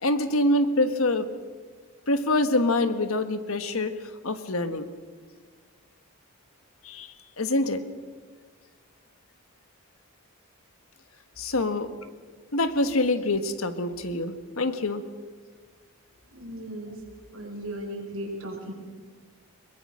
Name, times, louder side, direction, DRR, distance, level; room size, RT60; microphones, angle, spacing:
voice 1, 0.0-1.3 2.1-3.9 4.2-4.9 6.8-7.8 11.4-11.9 12.5-15.0, left 2 dB, 80° left, 10 dB, 1.4 m, -25 dB
voice 2, 16.3-17.0 17.3-18.7, right 1 dB, 70° right, 1 dB, 5.5 m, -36 dB
22.5 x 21.5 x 6.4 m, 1.5 s
head